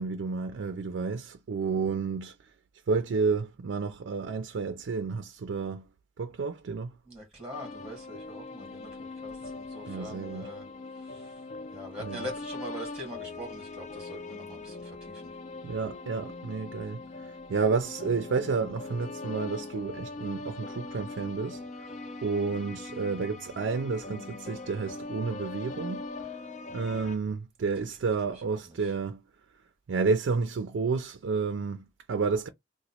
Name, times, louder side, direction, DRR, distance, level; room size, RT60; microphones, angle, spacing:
voice 1, 0.0-2.3 2.9-5.9 6.2-6.9 9.9-10.5 12.0-12.3 15.6-21.6 22.2-26.1 26.7-29.2 29.9-32.5, right 4 dB, 85° right, 0.4 m, -30 dB
voice 2, 7.1-8.9 9.2-10.6 11.1-11.3 11.7-15.2, equal, 5° right, 1.3 m, -43 dB
sound 1, 7.5-27.2, left 3 dB, 40° left, 0.3 m, -41 dB
3.0 x 2.1 x 4.1 m
head